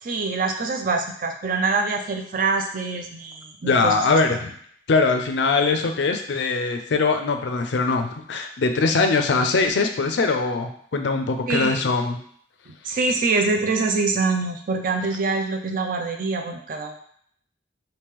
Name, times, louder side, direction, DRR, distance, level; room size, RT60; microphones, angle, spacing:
voice 1, 0.0-4.0 11.5-11.8 12.7-17.0, right 3 dB, 45° right, 4 dB, 0.4 m, -25 dB
voice 2, 3.6-4.5 4.9-12.2, left 4 dB, 65° left, 6 dB, 0.4 m, -22 dB
3.0 x 2.7 x 3.6 m, 0.62 s
head